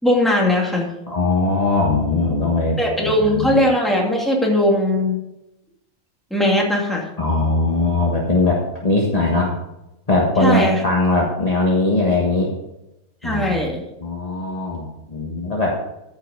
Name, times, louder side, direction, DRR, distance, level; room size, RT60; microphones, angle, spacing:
voice 1, 0.0-0.9 2.8-5.2 6.3-7.1 10.4-10.8 13.2-13.8, left 1 dB, ahead, -2 dB, 2.3 m, -19 dB
voice 2, 1.1-3.5 7.2-9.5 10.1-12.5 13.2-13.6 14.0-15.8, left 2 dB, 30° left, -3 dB, 1.5 m, -20 dB
14.0 x 5.7 x 5.3 m, 0.93 s
omnidirectional pair, 1.5 m